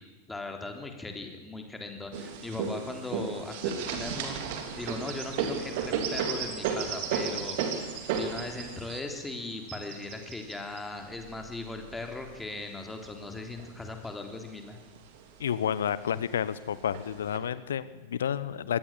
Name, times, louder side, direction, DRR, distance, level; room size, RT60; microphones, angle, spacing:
voice 1, 0.0-4.4 4.8-14.8, left 3 dB, 10° left, 4 dB, 3.3 m, -39 dB
sound 1, 2.1-12.4 13.0-14.0 14.4-14.5 14.8-15.5 16.2-16.3 16.9-17.4, right 6 dB, 50° right, 3.0 m, -34 dB
voice 2, 15.4-18.8, left 9 dB, 65° left, 17 dB, 1.0 m, -30 dB
23.0 x 17.5 x 7.4 m, 1.2 s
figure-of-eight pair, 90°, 0 cm